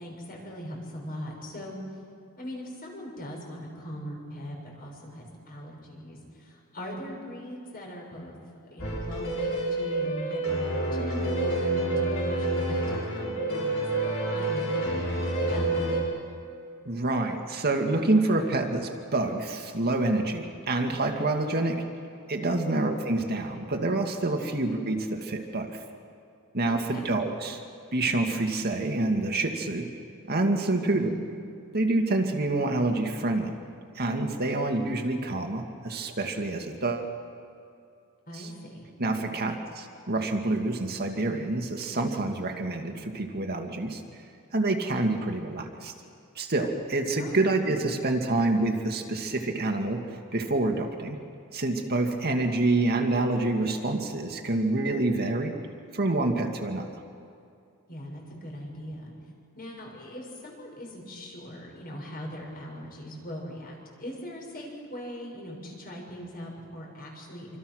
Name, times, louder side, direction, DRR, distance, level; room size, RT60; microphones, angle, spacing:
voice 1, 0.0-1.8 2.4-12.8 13.0-15.9 22.6-22.7 26.7-27.1 30.8-31.2 38.3-38.9 47.2-47.4 57.9-59.1 59.5-67.5, equal, 45° left, 0 dB, 6.7 m, -40 dB
sound 1, 8.8-16.0, right 2 dB, 70° left, 6.2 m, -28 dB
voice 2, 16.9-21.8 22.3-25.8 26.5-27.6 27.9-29.9 30.3-31.1 31.7-33.6 34.0-37.1 38.3-38.5 39.0-44.0 44.5-45.9 46.4-50.0 50.3-51.2 51.5-55.5 55.9-57.0, right 2 dB, 45° right, 3 dB, 2.0 m, -27 dB
27.5 x 25.5 x 6.4 m, 2.5 s
head